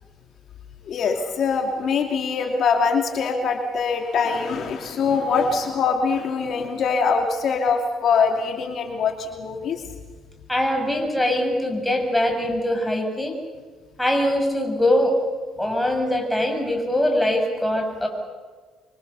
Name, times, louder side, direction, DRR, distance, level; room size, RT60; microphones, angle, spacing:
voice 1, 0.8-9.8, left 5 dB, 60° left, 3 dB, 2.6 m, -23 dB
voice 2, 10.5-13.4 14.0-15.2 15.6-18.1, left 1 dB, 5° left, 3 dB, 6.5 m, -22 dB
26.5 x 24.0 x 6.9 m, 1.4 s
cardioid pair, 95°, 0 cm